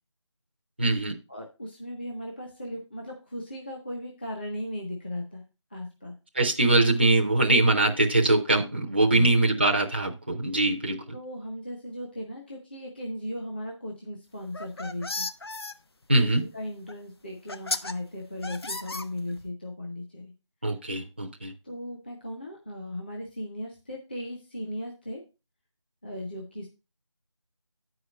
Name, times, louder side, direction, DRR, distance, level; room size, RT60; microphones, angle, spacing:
voice 1, 0.8-1.2 6.3-11.0 16.1-16.4 20.6-21.5, right 2 dB, 20° right, 2 dB, 0.6 m, -22 dB
voice 2, 1.3-5.4 5.7-6.1 9.0-9.3 11.1-15.3 16.2-16.3 16.5-20.3 21.6-25.2 26.0-26.7, left 1 dB, 20° left, -1 dB, 0.8 m, -37 dB
sound 1, 14.4-15.7 16.9-17.0 17.5-17.9 18.4-19.5, left 2 dB, 50° left, 0.6 m, -34 dB
9.0 x 4.9 x 5.1 m, 0.29 s
figure-of-eight pair, 170°, 16 cm